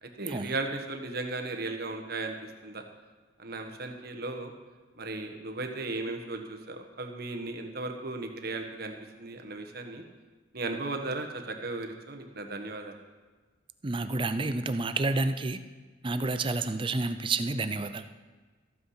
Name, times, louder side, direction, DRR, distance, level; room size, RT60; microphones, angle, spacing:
voice 1, 0.0-2.3 2.6-2.8 3.4-4.5 5.0-10.0 10.5-12.9, right 2 dB, 50° right, 5 dB, 1.3 m, -36 dB
voice 2, 13.8-15.6 16.0-18.0, right 2 dB, 25° right, 10 dB, 0.6 m, -29 dB
14.0 x 8.5 x 5.8 m, 1.3 s
head